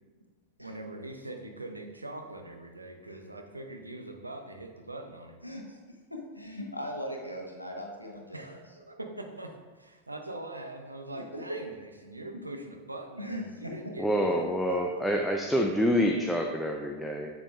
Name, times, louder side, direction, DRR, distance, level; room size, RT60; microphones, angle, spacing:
voice 1, 0.6-5.4 8.3-14.5, right 2 dB, 85° right, 4 dB, 0.6 m, -42 dB
voice 2, 5.4-5.8 6.1-8.5 11.1-11.6 12.5-12.6 13.2-13.7 14.7-14.8, equal, 90° left, 1 dB, 0.9 m, -39 dB
voice 3, 14.0-17.3, equal, ahead, 1 dB, 0.5 m, -27 dB
7.1 x 7.0 x 2.5 m, 1.3 s
figure-of-eight pair, 90°, 0 cm